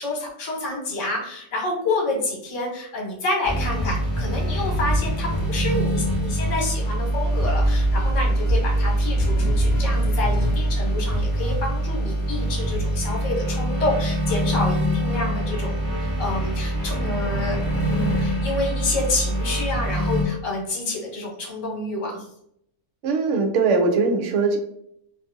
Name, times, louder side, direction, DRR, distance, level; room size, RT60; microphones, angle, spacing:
voice 1, 0.0-15.7 16.0-22.2, left 2 dB, 65° left, -1 dB, 1.2 m, -28 dB
sound 1, 3.4-20.2, right 1 dB, 20° left, 0.6 m, -23 dB
voice 2, 23.0-24.6, right 4 dB, 65° right, 3 dB, 0.8 m, -20 dB
2.5 x 2.5 x 2.5 m, 0.71 s
omnidirectional pair, 1.4 m